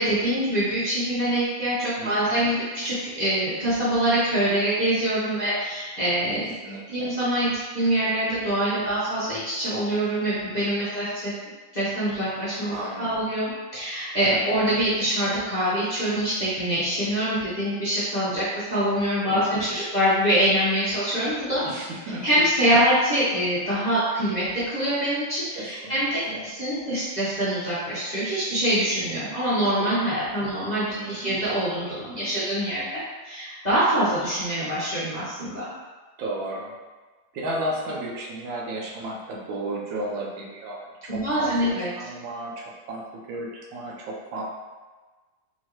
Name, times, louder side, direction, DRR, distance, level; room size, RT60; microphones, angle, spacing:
voice 1, 0.0-6.5 6.9-11.3 11.7-21.6 22.2-35.7 41.1-41.9, right 1 dB, 30° left, -12 dB, 0.8 m, -24 dB
voice 2, 2.0-2.4 6.6-7.1 12.7-13.2 14.3-14.5 19.3-19.7 21.6-22.3 25.5-26.5 30.9-31.4 36.2-36.7 37.3-43.0 43.3-44.4, right 1 dB, 85° right, -3 dB, 1.5 m, -34 dB
4.4 x 2.8 x 2.9 m, 1.3 s
omnidirectional pair, 2.0 m